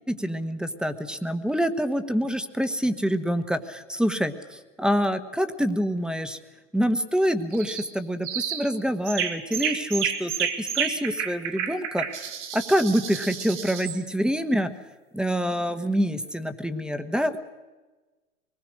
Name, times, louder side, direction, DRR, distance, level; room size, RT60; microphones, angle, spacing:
voice 1, 0.1-6.4 6.7-12.0 12.5-14.8 15.1-17.4, equal, ahead, 10 dB, 1.2 m, -26 dB
sound 1, 7.5-7.9 8.2-8.7 9.1-14.0, right 8 dB, 70° right, 2.9 m, -30 dB
24.0 x 20.0 x 6.4 m, 1.2 s
hypercardioid pair, 105°, 37 cm